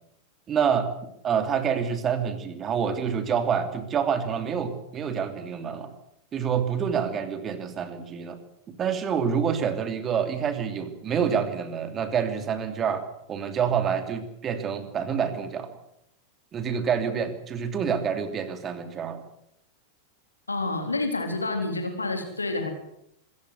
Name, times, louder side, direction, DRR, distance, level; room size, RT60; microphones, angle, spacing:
voice 1, 0.5-0.9 1.2-5.9 6.3-8.4 8.7-13.0 13.3-15.7 16.5-19.2, right 7 dB, 25° right, 8 dB, 3.0 m, -27 dB
voice 2, 20.5-22.7, left 2 dB, 80° left, 5 dB, 3.5 m, -28 dB
25.5 x 14.5 x 8.2 m, 0.78 s
figure-of-eight pair, 90°, 0 cm